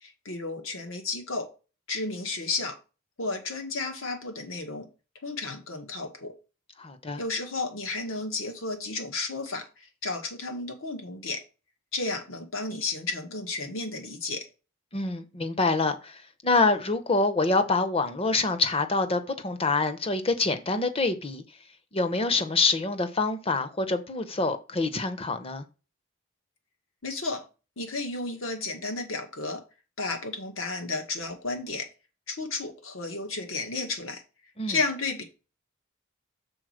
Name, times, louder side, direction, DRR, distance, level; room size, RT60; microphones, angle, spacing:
voice 1, 0.0-1.5 1.9-2.8 3.2-4.9 5.2-6.3 7.2-11.4 11.9-14.5 27.0-27.4 27.8-29.6 30.0-31.8 32.3-34.2 34.7-35.2, left 3 dB, 70° left, 1.7 m, -32 dB
voice 2, 6.8-7.2 14.9-21.4 21.9-25.6 34.6-34.8, left 3 dB, 25° left, 0.8 m, -26 dB
6.3 x 4.2 x 6.4 m
head